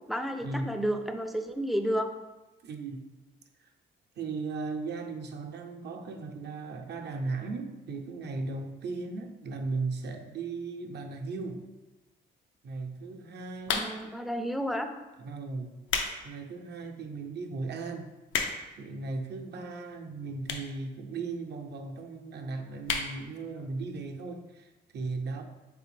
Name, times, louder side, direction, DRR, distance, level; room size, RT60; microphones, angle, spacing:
voice 1, 0.1-2.1 13.7-14.9, equal, ahead, 6 dB, 0.3 m, -31 dB
voice 2, 2.6-3.0 3.6-3.7 4.2-11.7 12.6-14.0 15.2-15.7 16.2-18.1 18.8-25.4, right 3 dB, 60° right, 4 dB, 0.5 m, -37 dB
sound 1, 13.6-14.2 14.9-15.1 15.6-16.2 16.6-16.7 17.3-17.4 17.6-17.7 17.9-18.8 19.6-19.7 20.4-20.8 21.1-21.2 21.4-21.5 21.7-21.8 22.1-22.3 22.8-23.1 23.5-23.6 23.8-23.9, left 5 dB, 80° left, 0.5 m, -31 dB
3.6 x 3.3 x 3.2 m, 1.1 s
cardioid pair, 75°, 20 cm